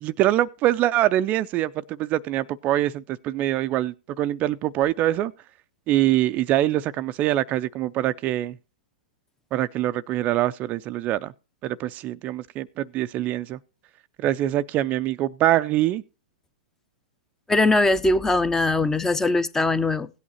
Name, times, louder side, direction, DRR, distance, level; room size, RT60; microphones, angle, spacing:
voice 1, 0.0-1.7 2.0-5.3 5.9-8.6 9.5-11.3 11.6-13.6 14.2-16.0, right 14 dB, 30° right, 0.4 m, -24 dB
voice 2, 17.5-20.1, left 2 dB, 10° left, 0.6 m, -21 dB
17.0 x 8.5 x 2.9 m
hypercardioid pair, 115°, 5 cm